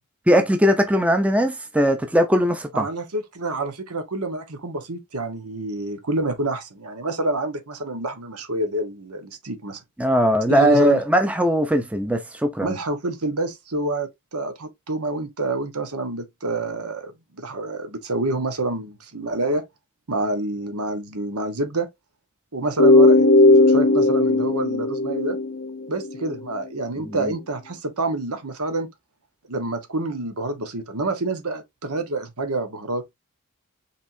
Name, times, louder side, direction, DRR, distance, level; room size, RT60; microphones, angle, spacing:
voice 1, 0.3-2.9 10.0-12.7 27.1-27.2, equal, 5° right, 0.6 m, -19 dB
voice 2, 2.7-9.8 10.5-11.0 12.6-19.6 20.1-21.9 22.5-25.4 25.9-28.9 29.5-33.0, right 2 dB, 85° right, 1.4 m, -28 dB
sound 1, 22.8-26.4, left 2 dB, 45° left, 0.7 m, -16 dB
5.3 x 3.5 x 2.7 m
head